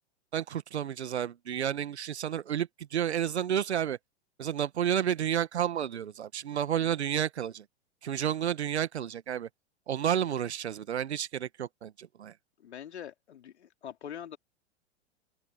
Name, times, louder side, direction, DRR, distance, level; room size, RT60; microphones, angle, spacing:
voice 1, 0.3-4.0 4.4-7.7 8.0-9.5 9.9-12.3, right 9 dB, 75° right, 1.6 m, -31 dB
voice 2, 12.6-14.4, left 9 dB, 75° left, 3.4 m, -43 dB
open air
hypercardioid pair, 100°, 34 cm